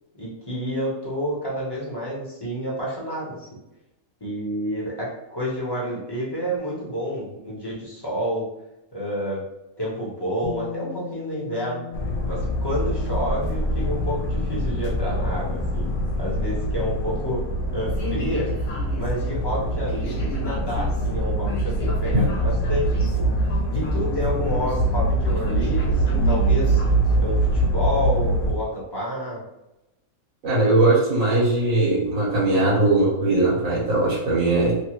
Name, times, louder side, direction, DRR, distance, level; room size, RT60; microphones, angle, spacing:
voice 1, 0.1-3.5 4.2-8.4 8.9-9.4 9.8-11.8 12.3-15.9 16.2-17.4 17.7-18.5 18.9-23.3 23.7-26.8 27.2-29.4, equal, 20° left, -6 dB, 0.8 m, -29 dB
Bass guitar, 10.4-16.7, left 7 dB, 45° left, 1.0 m, -40 dB
sound 1, 11.9-28.5, right 1 dB, 65° left, 0.9 m, -24 dB
voice 2, 30.4-34.7, right 2 dB, 65° right, -6 dB, 1.6 m, -20 dB
3.2 x 2.0 x 3.1 m, 0.91 s
omnidirectional pair, 1.5 m